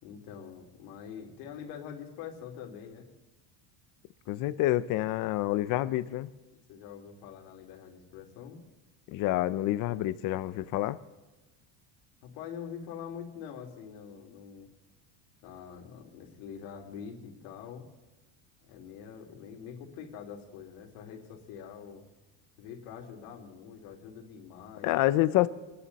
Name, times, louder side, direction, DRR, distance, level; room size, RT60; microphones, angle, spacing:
voice 1, 0.0-3.1 6.7-8.6 12.2-14.7 15.4-17.8 18.7-22.0 22.6-24.9, left 7 dB, 75° left, 1 dB, 3.2 m, -44 dB
voice 2, 4.3-6.3 9.1-11.0 24.8-25.5, left 15 dB, 45° left, 14 dB, 0.6 m, -27 dB
28.5 x 10.0 x 4.2 m, 1.1 s
cardioid pair, 170°, 47 cm